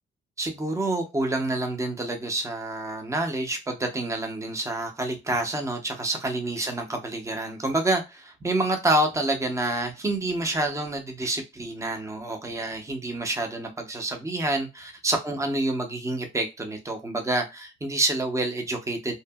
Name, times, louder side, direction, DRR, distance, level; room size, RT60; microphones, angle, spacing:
voice 1, 0.4-19.2, right 2 dB, 15° right, 0.7 m, -28 dB
2.7 x 2.5 x 2.2 m
cardioid pair, 90°, 20 cm